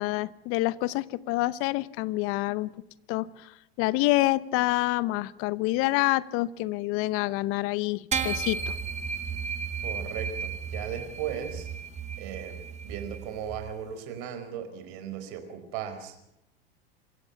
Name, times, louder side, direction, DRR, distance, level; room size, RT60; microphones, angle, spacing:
voice 1, 0.0-2.7 3.1-8.8, left 19 dB, 50° left, 19 dB, 0.9 m, -27 dB
sound 1, 8.1-13.7, right 6 dB, 20° right, 1.5 m, -34 dB
voice 2, 9.8-11.7 12.2-12.6 12.8-16.2, right 8 dB, 55° right, 8 dB, 4.6 m, -37 dB
26.5 x 15.5 x 7.0 m, 0.84 s
hypercardioid pair, 95°, 30 cm